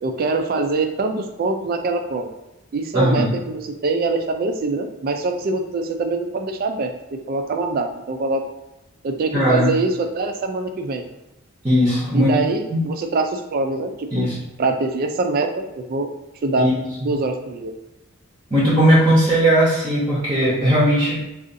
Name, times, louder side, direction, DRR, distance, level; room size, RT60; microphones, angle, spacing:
voice 1, 0.0-2.3 2.7-8.4 9.0-11.0 12.1-14.3 14.6-15.5 15.8-16.1 16.4-16.7 17.0-17.7, right 3 dB, 45° right, 5 dB, 0.3 m, -24 dB
voice 2, 2.9-3.4 9.3-9.7 11.6-12.3 12.7-12.8 14.1-14.4 16.6-16.7 18.5-21.2, equal, 20° right, -7 dB, 0.7 m, -17 dB
3.7 x 2.4 x 2.5 m, 0.98 s
head